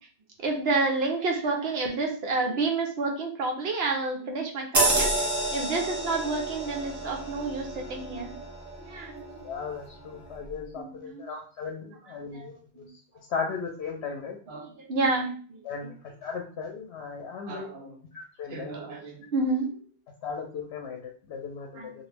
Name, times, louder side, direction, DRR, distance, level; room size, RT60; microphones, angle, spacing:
voice 1, 0.4-8.3 8.9-9.2 10.8-11.4 12.0-12.5 12.7-12.9 14.5-15.9 17.5-17.9 18.5-19.7 21.7-21.9, right 3 dB, 70° right, 3 dB, 0.9 m, -30 dB
sound 1, 4.7-9.7 10.1-10.3, right 2 dB, 20° right, 0.6 m, -30 dB
voice 2, 9.4-12.9 13.3-14.4 15.6-15.9 16.2-17.7 18.1-18.7 20.2-21.9, left 5 dB, 75° left, 2 dB, 0.8 m, -36 dB
2.9 x 2.4 x 3.3 m, 0.43 s
omnidirectional pair, 1.1 m